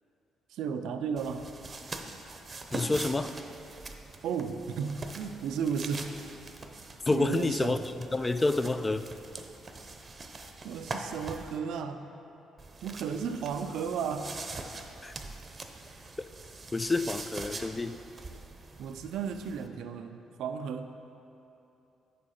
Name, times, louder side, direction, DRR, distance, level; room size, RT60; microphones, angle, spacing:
voice 1, 0.5-1.5 4.2-6.2 7.1-7.8 10.6-12.1 12.8-14.6 18.8-21.0, right 6 dB, 65° right, 8 dB, 0.4 m, -34 dB
sound 1, 1.2-11.6 12.6-19.7, right 3 dB, 35° right, 0.7 m, -43 dB
voice 2, 2.7-3.3 7.1-7.8 8.1-9.0 15.0-15.1 16.7-18.0, left 2 dB, 25° left, 10 dB, 0.4 m, -28 dB
8.6 x 6.6 x 4.3 m, 2.9 s
hypercardioid pair, 45°, 0 cm